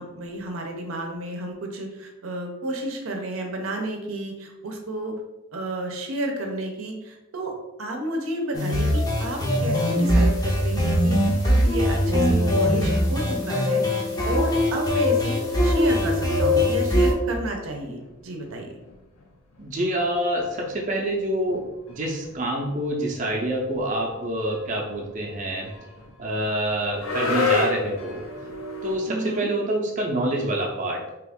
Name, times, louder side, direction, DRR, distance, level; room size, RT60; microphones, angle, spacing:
voice 1, 0.0-5.2 5.5-11.2 11.4-18.7 29.1-29.5, right 1 dB, 90° right, 2 dB, 0.6 m, -31 dB
sound 1, 8.5-17.1, left 1 dB, 20° left, 0.5 m, -21 dB
sound 2, 17.2-18.1 18.4-19.3 19.5-19.7 20.0-20.1 20.4-29.0, left 3 dB, 85° left, 0.7 m, -31 dB
voice 2, 19.6-25.7 26.2-28.3 28.8-31.0, right 1 dB, 40° right, -1 dB, 0.5 m, -27 dB
3.0 x 2.4 x 3.5 m, 0.99 s
head